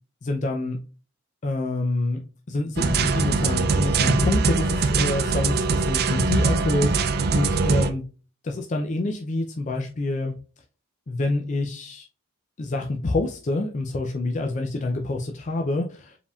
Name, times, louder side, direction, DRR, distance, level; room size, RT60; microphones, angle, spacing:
voice 1, 0.2-0.8 1.4-2.2 2.5-8.0 8.4-10.3 11.1-12.1 12.6-16.2, left 2 dB, 35° left, 2 dB, 0.4 m, -27 dB
sound 1, 2.8-7.9, right 4 dB, 50° right, 0.4 m, -22 dB
4.8 x 3.5 x 2.3 m, 0.36 s
head